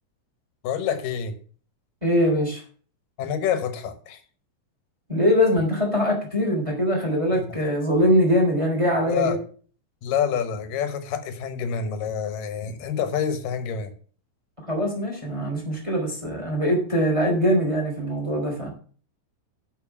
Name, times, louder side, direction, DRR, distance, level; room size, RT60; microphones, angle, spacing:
voice 1, 0.6-1.4 3.2-4.2 7.3-7.6 9.1-9.4 10.0-13.9, left 7 dB, 90° left, 9 dB, 2.9 m, -27 dB
voice 2, 2.0-2.6 5.1-9.3 14.7-18.7, equal, 10° right, 0 dB, 3.1 m, -22 dB
11.0 x 5.6 x 6.0 m, 0.41 s
omnidirectional pair, 3.7 m